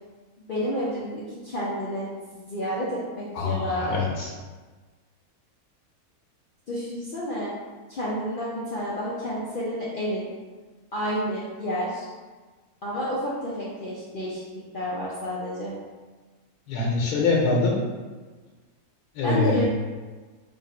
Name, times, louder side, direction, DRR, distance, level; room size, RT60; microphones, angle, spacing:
voice 1, 0.5-2.1 2.3-3.9 6.7-7.5 7.9-10.3 10.9-12.1 12.8-14.4 14.7-15.7 19.2-19.6, equal, 55° left, -7 dB, 0.5 m, -30 dB
voice 2, 3.3-4.3 16.7-17.8 19.1-19.6, left 3 dB, 90° left, -3 dB, 1.2 m, -24 dB
3.6 x 2.5 x 4.1 m, 1.4 s
omnidirectional pair, 1.6 m